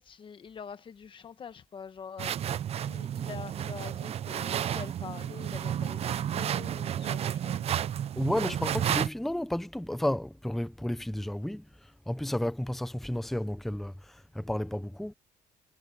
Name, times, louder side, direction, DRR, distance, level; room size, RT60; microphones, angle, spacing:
voice 1, 0.0-2.3 2.8-7.8, left 6 dB, 35° left, 1.2 m, -45 dB
sound 1, 2.2-9.1, right 10 dB, 40° right, 0.6 m, -32 dB
voice 2, 8.2-15.1, left 1 dB, ahead, 0.7 m, -32 dB
cardioid pair, 150°, 16 cm